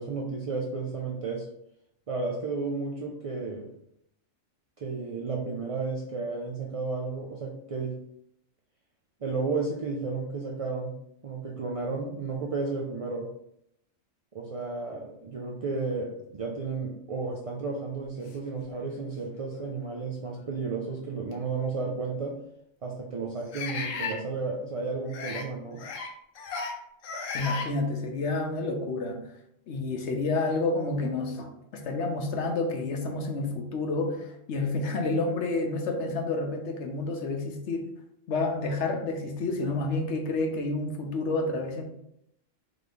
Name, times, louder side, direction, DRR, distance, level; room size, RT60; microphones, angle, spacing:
voice 1, 0.0-1.5 2.1-3.7 4.8-8.0 9.2-11.0 11.2-13.3 14.3-22.4 22.8-25.8, right 4 dB, 65° right, -2 dB, 0.3 m, -33 dB
sound 1, 18.7-18.8 19.6-19.7 21.3-21.4 23.5-24.2 25.1-25.5 25.8-26.1 26.4-26.7 27.0-27.7, left 4 dB, 90° left, 1.1 m, -34 dB
voice 2, 27.3-29.2 29.7-37.9 38.3-41.8, left 3 dB, 70° left, 3 dB, 1.0 m, -29 dB
3.9 x 3.1 x 3.4 m, 0.75 s
omnidirectional pair, 1.3 m